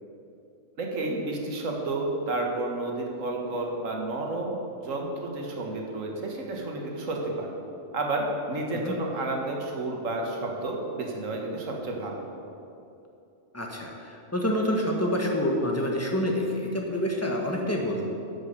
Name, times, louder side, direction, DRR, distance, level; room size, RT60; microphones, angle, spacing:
voice 1, 0.8-7.5 7.9-12.2, right 2 dB, 85° right, 0 dB, 1.7 m, -31 dB
voice 2, 13.5-18.0, equal, 15° left, 0 dB, 1.1 m, -27 dB
10.0 x 6.3 x 6.7 m, 2.8 s
omnidirectional pair, 1.3 m